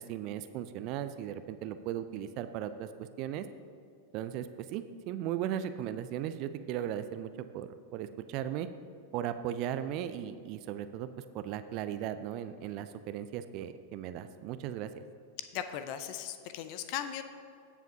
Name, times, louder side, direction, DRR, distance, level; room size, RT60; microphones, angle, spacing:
voice 1, 0.0-3.4 4.1-8.7 9.1-11.1 11.3-14.9, right 10 dB, 40° right, 11 dB, 0.4 m, -37 dB
voice 2, 15.4-17.2, left 10 dB, 45° left, 10 dB, 0.5 m, -38 dB
16.5 x 7.1 x 2.8 m, 2.4 s
figure-of-eight pair, 90°, 0 cm